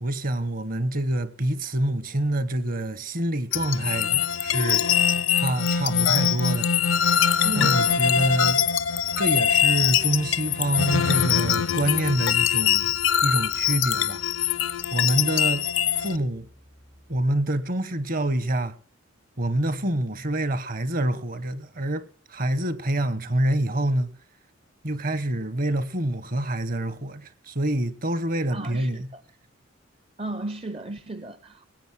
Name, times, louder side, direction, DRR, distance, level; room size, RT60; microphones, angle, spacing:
voice 1, 0.0-5.0 5.3-6.7 7.1-7.2 7.5-8.6 9.2-12.9 13.2-14.2 14.9-15.7 16.0-16.5 17.1-18.8 19.4-24.1 24.8-29.1, right 1 dB, 45° right, 1.0 m, -26 dB
sound 1, 3.5-16.2, left 8 dB, 75° left, 0.6 m, -23 dB
sound 2, 4.1-17.2, equal, 85° right, 6.1 m, -54 dB
voice 2, 7.4-7.9 28.5-29.2 30.2-31.7, right 2 dB, 30° right, 0.6 m, -35 dB
19.5 x 8.2 x 6.1 m
head